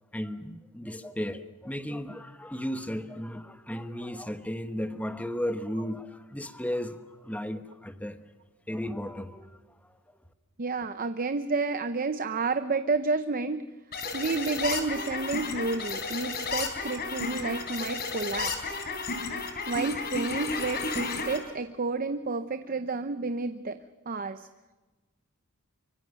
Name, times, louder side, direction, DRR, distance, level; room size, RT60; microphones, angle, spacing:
voice 1, 0.1-8.2 8.7-9.6, equal, 5° left, 9 dB, 1.2 m, -35 dB
voice 2, 10.6-13.7 14.1-18.8 19.7-24.5, right 3 dB, 40° right, 10 dB, 0.8 m, -30 dB
sound 1, 13.9-21.4, left 4 dB, 45° left, 4.0 m, -32 dB
25.0 x 24.5 x 6.4 m, 1.2 s
head